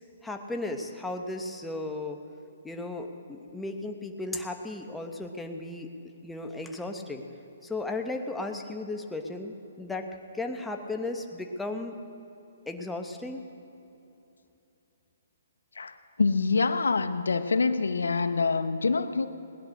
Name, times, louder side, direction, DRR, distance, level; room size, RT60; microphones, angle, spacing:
voice 1, 0.2-2.2 2.6-5.9 6.2-7.2 7.6-10.1 10.3-12.0 12.7-13.4, left 2 dB, 5° left, 4 dB, 1.1 m, -35 dB
voice 2, 15.7-19.3, left 4 dB, 90° left, 10 dB, 0.9 m, -26 dB
19.5 x 10.5 x 6.4 m, 2.9 s
hypercardioid pair, 145°, 0 cm